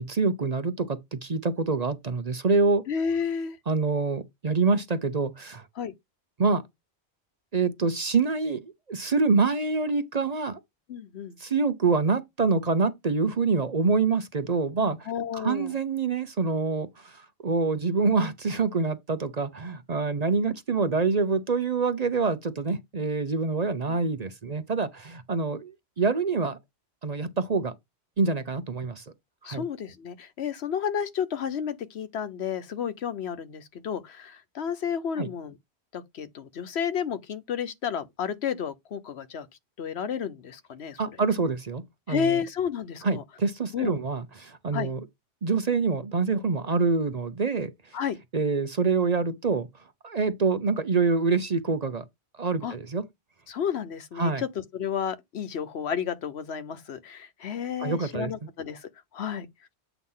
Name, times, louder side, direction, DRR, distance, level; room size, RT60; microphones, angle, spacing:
voice 1, 0.0-2.8 3.7-5.6 6.4-6.6 7.5-10.6 11.4-15.1 15.3-26.6 27.0-27.7 28.2-29.0 29.4-29.6 35.2-35.3 41.0-41.8 42.1-42.4 43.0-45.0 45.4-47.7 48.3-49.7 50.0-52.0 52.4-53.0 54.2-54.4 57.8-58.3, right 4 dB, 40° right, 0.7 m, -26 dB
voice 2, 2.9-3.6 5.8-5.9 10.9-11.4 15.1-15.7 29.4-35.6 35.9-39.5 39.8-41.0 42.1-43.2 43.7-44.0 44.7-44.9 47.9-48.2 52.6-52.7 53.5-59.5, left 7 dB, 70° left, 1.1 m, -31 dB
8.1 x 2.9 x 5.5 m
omnidirectional pair, 1.1 m